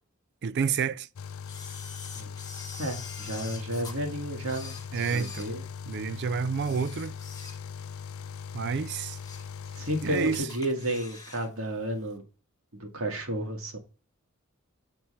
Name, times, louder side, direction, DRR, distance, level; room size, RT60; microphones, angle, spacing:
voice 1, 0.4-1.1 4.9-5.5 5.9-7.1 8.5-9.2 10.0-10.4, right 5 dB, 50° right, 0.4 m, -29 dB
sound 1, 1.2-10.5, left 6 dB, 75° left, 0.5 m, -40 dB
Camera, 1.5-4.0 4.4-6.1 6.5-7.9 8.3-8.4 8.9-9.6 9.9-10.0 10.3-11.5 11.7-11.8, left 5 dB, 20° left, 1.4 m, -45 dB
voice 2, 2.8-5.7 9.7-12.2 12.7-13.8, right 1 dB, 70° right, 2.2 m, -32 dB
8.3 x 4.4 x 5.6 m
head